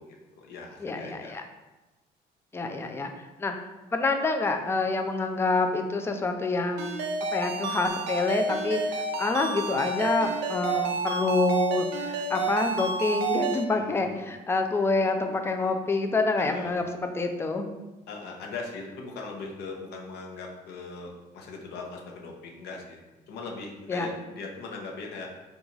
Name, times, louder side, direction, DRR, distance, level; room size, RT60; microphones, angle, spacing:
voice 1, 0.0-1.4 13.7-14.2 16.4-16.7 18.1-23.0 23.3-25.3, left 3 dB, 75° left, 1 dB, 0.7 m, -40 dB
voice 2, 0.8-1.4 2.5-3.1 3.4-3.5 3.9-7.0 7.3-17.7 23.9-24.1, left 3 dB, 15° left, 5 dB, 0.3 m, -27 dB
Ringtone, 6.8-13.6, right 3 dB, 85° right, 0.5 m, -30 dB
2.9 x 2.4 x 3.8 m, 1.1 s
cardioid pair, 110°, 17 cm